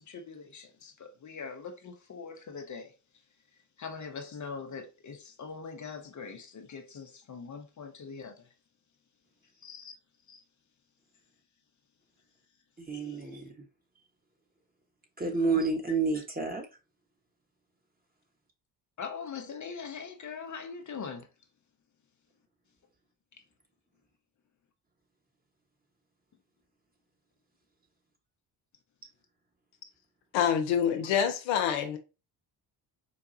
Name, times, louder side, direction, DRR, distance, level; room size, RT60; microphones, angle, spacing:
voice 1, 0.0-2.9 3.8-8.5 9.6-9.9 10.3-10.4 12.9-13.3 15.2-15.3 15.9-16.0 19.0-21.3, left 5 dB, 35° left, 0.7 m, -42 dB
voice 2, 12.8-13.7 15.2-16.7, right 4 dB, 20° right, 1.2 m, -30 dB
voice 3, 30.3-32.0, left 8 dB, 80° left, 0.8 m, -26 dB
4.8 x 2.3 x 2.7 m
hypercardioid pair, 55°, 49 cm